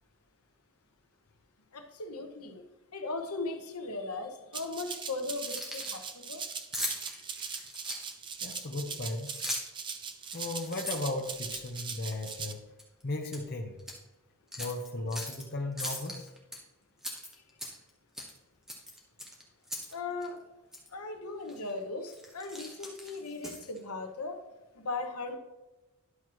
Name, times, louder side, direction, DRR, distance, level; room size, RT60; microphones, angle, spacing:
voice 1, 1.7-2.7 2.9-6.4 7.1-7.5 19.9-20.4 20.9-24.4 24.7-25.4, left 3 dB, 85° left, 5 dB, 1.1 m, -38 dB
Rattle (instrument), 4.5-12.5, right 6 dB, 20° right, 0.4 m, -40 dB
Keys jangling, 5.3-6.0 6.7-8.3 9.1-9.8 10.3-11.8 12.3-12.5 12.8-13.4 13.8-14.0 14.5-15.4 15.8-16.6 17.0-17.9 18.2-18.4 18.7-19.9 20.2-20.3 20.7-20.9 21.5-21.7 22.1-23.8, left 1 dB, ahead, 1.0 m, -40 dB
voice 2, 8.4-9.4 10.3-12.6 13.0-13.8 14.6-16.3, left 2 dB, 45° left, 1 dB, 0.8 m, -36 dB
11.0 x 6.1 x 3.0 m, 1.0 s
head